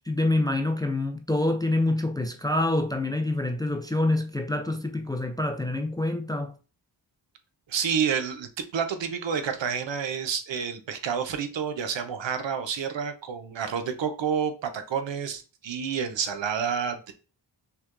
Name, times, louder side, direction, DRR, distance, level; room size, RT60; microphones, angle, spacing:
voice 1, 0.1-6.5, left 2 dB, 10° left, 0.3 m, -26 dB
voice 2, 7.7-17.1, right 7 dB, 80° right, 0.7 m, -29 dB
5.6 x 2.2 x 2.4 m
wide cardioid pair, 70°, 44 cm